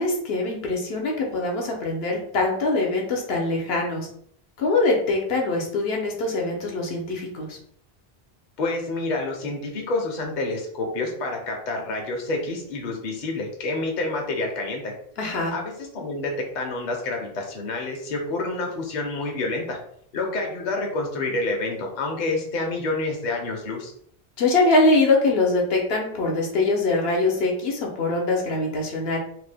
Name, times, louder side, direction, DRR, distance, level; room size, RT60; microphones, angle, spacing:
voice 1, 0.0-4.1 4.6-7.6 15.2-15.5 24.4-29.2, left 2 dB, 75° left, 0 dB, 0.9 m, -23 dB
voice 2, 8.6-14.9 15.5-19.8 20.1-23.9, left 2 dB, 50° left, 1 dB, 0.7 m, -28 dB
2.9 x 2.0 x 3.3 m, 0.64 s
omnidirectional pair, 1.0 m